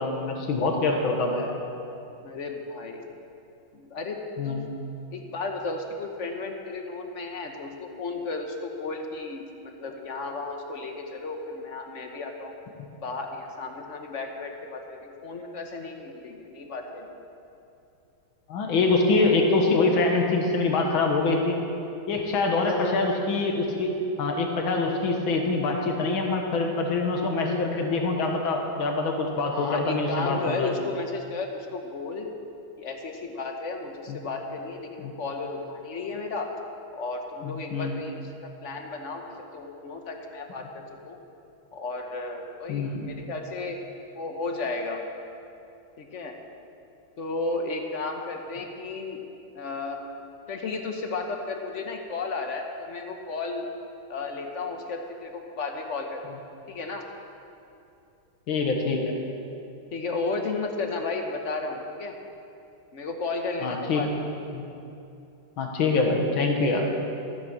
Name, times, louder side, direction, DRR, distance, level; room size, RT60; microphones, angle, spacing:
voice 1, 0.0-1.5 4.4-4.7 18.5-21.6 22.1-23.9 24.2-30.7 34.1-34.2 35.0-35.1 37.4-38.0 42.7-43.1 58.5-59.1 63.6-64.0 64.5-64.6 65.6-66.9, left 3 dB, 80° left, 2 dB, 2.2 m, -25 dB
voice 2, 2.2-3.0 3.7-4.6 5.1-12.5 13.0-17.2 22.6-23.0 29.5-32.3 32.8-36.5 36.9-39.2 39.5-41.2 41.7-43.8 44.1-45.0 46.0-46.3 47.2-49.2 49.5-50.0 50.5-53.7 54.1-56.4 56.7-57.0 59.9-62.2 62.9-64.1, left 3 dB, 45° left, 3 dB, 1.2 m, -33 dB
14.0 x 9.5 x 6.5 m, 2.7 s
omnidirectional pair, 2.2 m